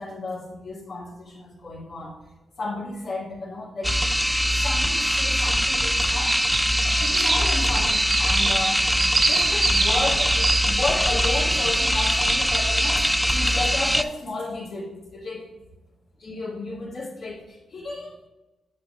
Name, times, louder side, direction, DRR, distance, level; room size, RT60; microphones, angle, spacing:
voice 1, 0.0-2.2 2.6-3.9 4.6-6.3 6.8-15.5 16.2-18.3, left 2 dB, 75° left, -11 dB, 2.7 m, -33 dB
sound 1, 3.8-14.0, equal, ahead, 0.4 m, -22 dB
sound 2, 6.2-12.9, right 3 dB, 65° right, 1.5 m, -26 dB
8.1 x 6.9 x 2.9 m, 1.1 s
supercardioid pair, 50°, 0 cm